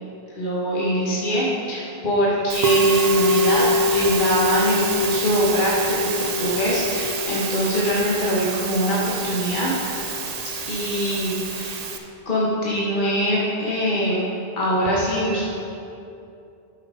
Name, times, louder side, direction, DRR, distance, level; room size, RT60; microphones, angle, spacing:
voice 1, 0.3-9.7 10.7-11.8 12.2-14.2 14.6-15.5, equal, 55° left, -6 dB, 1.4 m, -23 dB
Musical instrument, 2.5-12.0, right 1 dB, 45° right, 0.6 m, -24 dB
8.7 x 6.4 x 4.9 m, 2.6 s
omnidirectional pair, 1.1 m